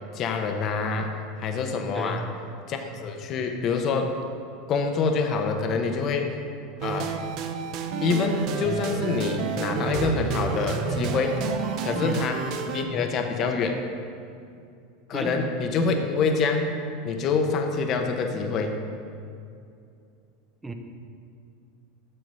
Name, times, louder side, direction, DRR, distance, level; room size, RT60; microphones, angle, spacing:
voice 1, 0.1-2.2 2.7-4.1 4.7-6.3 6.8-7.1 8.0-11.4 11.8-13.8 15.1-16.7 17.0-18.8, left 4 dB, 45° left, 5 dB, 0.8 m, -26 dB
voice 2, 1.9-2.3 11.9-12.2 15.1-15.4 20.6-20.7, right 2 dB, 10° right, 5 dB, 0.8 m, -33 dB
sound 1, 6.8-12.8, right 6 dB, 55° right, 0.7 m, -30 dB
7.8 x 6.0 x 5.4 m, 2.5 s
hypercardioid pair, 105°, 0 cm